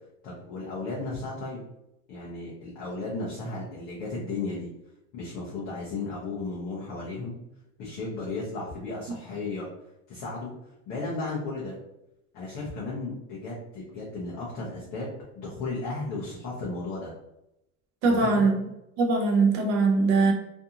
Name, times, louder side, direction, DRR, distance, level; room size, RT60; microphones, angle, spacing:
voice 1, 0.2-1.6 2.1-4.7 5.1-7.4 7.8-9.7 10.1-10.5 10.9-11.8 12.3-15.1 15.4-17.1 18.0-18.5, left 3 dB, 25° left, -5 dB, 0.4 m, -34 dB
voice 2, 18.0-18.5 19.0-20.3, right 3 dB, 35° right, 2 dB, 0.5 m, -21 dB
2.5 x 2.4 x 2.7 m, 0.87 s
supercardioid pair, 170°, 37 cm